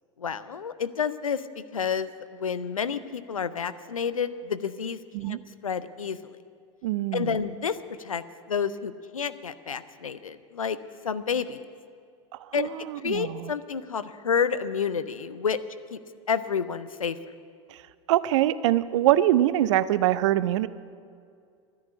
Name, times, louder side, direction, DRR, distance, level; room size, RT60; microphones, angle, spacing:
voice 1, 0.2-1.4 1.7-5.0 5.2-5.4 5.6-6.4 7.1-10.8 11.0-11.6 12.5-12.7 13.0-15.6 15.9-16.0 16.3-17.2, left 6 dB, 85° left, 14 dB, 0.6 m, -29 dB
voice 2, 6.8-7.4 12.5-13.5 17.7-17.8 18.1-20.7, right 13 dB, 60° right, 17 dB, 0.6 m, -24 dB
11.5 x 10.5 x 9.6 m, 2.3 s
figure-of-eight pair, 85°, 17 cm